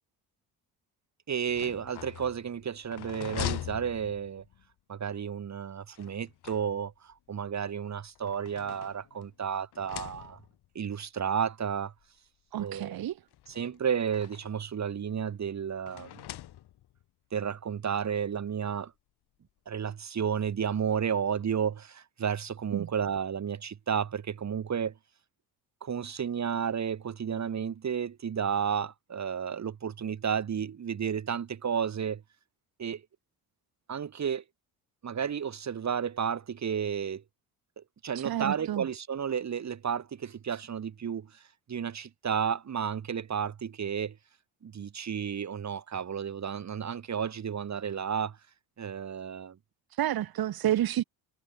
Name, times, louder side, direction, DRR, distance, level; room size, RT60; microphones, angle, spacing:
voice 1, 1.3-4.4 4.9-10.4 10.8-11.9 12.6-13.0 13.5-16.1 17.3-18.9 19.7-24.9 25.8-32.2 32.8-33.0 33.9-34.4 35.0-37.2 37.8-41.4 41.7-44.2 44.6-48.4 48.8-49.6, right 7 dB, 40° right, 1.9 m, -32 dB
sound 1, 1.4-4.7 5.9-7.1 7.9-9.3 9.7-10.7 11.6-11.7 12.0-12.1 13.3-14.6 15.9-17.0, left 13 dB, 65° left, 2.5 m, -42 dB
voice 2, 12.5-13.1 22.7-22.9 38.2-38.8 50.0-51.0, right 12 dB, 55° right, 1.8 m, -29 dB
supercardioid pair, 65°, 43 cm